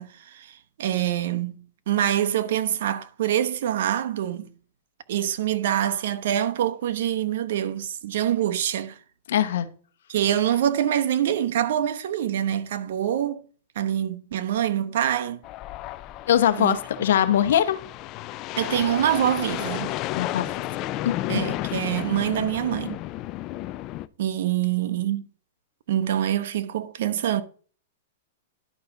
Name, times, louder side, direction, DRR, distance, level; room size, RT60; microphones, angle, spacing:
voice 1, 0.0-4.5 5.1-9.0 10.1-13.4 13.8-15.4 16.6-16.8 18.6-20.0 21.3-23.0 24.2-25.3 25.9-27.4, right 11 dB, 65° right, 0.9 m, -25 dB
voice 2, 9.3-9.7 16.3-17.8 20.1-20.6 21.0-21.5, left 10 dB, 70° left, 1.0 m, -22 dB
sound 1, 15.4-24.1, left 15 dB, 35° left, 0.4 m, -32 dB
11.0 x 5.8 x 3.8 m
hypercardioid pair, 145°, 0 cm